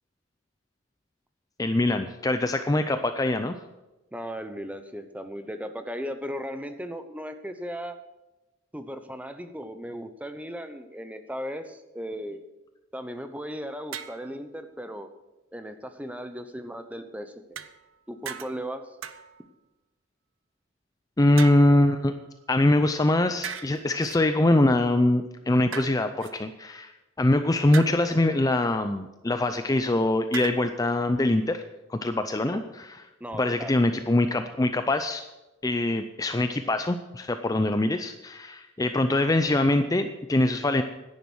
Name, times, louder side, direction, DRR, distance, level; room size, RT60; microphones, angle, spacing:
voice 1, 1.6-3.5 21.2-22.1 22.5-26.9 27.2-31.6 31.9-32.6 33.3-35.3 35.6-40.8, left 1 dB, 20° left, 8 dB, 0.5 m, -23 dB
voice 2, 4.1-8.0 8.7-12.4 12.9-15.1 15.5-17.4 18.1-19.0 32.5-32.6 33.2-33.8, equal, 5° right, 8 dB, 0.8 m, -36 dB
sound 1, 13.9-14.3 17.6-18.0 18.2-18.7 19.0-19.5 21.4-22.4 23.4-24.2 25.7-26.3 27.7-28.2 30.3-30.5, right 8 dB, 80° right, 0.7 m, -38 dB
10.5 x 10.5 x 6.2 m, 1.0 s
head